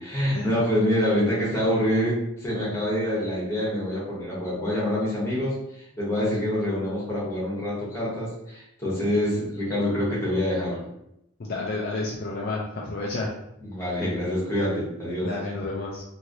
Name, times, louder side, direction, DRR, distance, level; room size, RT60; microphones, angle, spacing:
voice 1, 0.0-10.8 13.6-15.3, equal, 10° left, -7 dB, 1.1 m, -26 dB
voice 2, 11.4-13.3 15.2-16.0, left 2 dB, 45° left, -3 dB, 0.4 m, -30 dB
3.1 x 2.7 x 2.6 m, 0.82 s
head